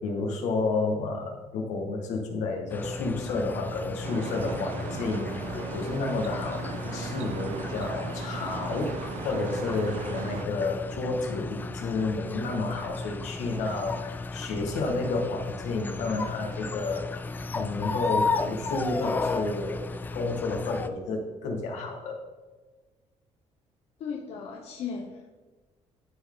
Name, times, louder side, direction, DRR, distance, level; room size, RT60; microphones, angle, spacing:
voice 1, 0.0-17.0 17.5-22.2, left 3 dB, 80° left, 1 dB, 1.8 m, -31 dB
sound 1, 2.7-20.9, left 3 dB, 15° left, 0.3 m, -34 dB
sound 2, 4.0-10.4, right 7 dB, 80° right, 0.7 m, -38 dB
voice 2, 24.0-25.3, left 6 dB, 55° left, 1 dB, 0.9 m, -36 dB
13.0 x 4.6 x 3.9 m, 1.3 s
cardioid pair, 175°, 12 cm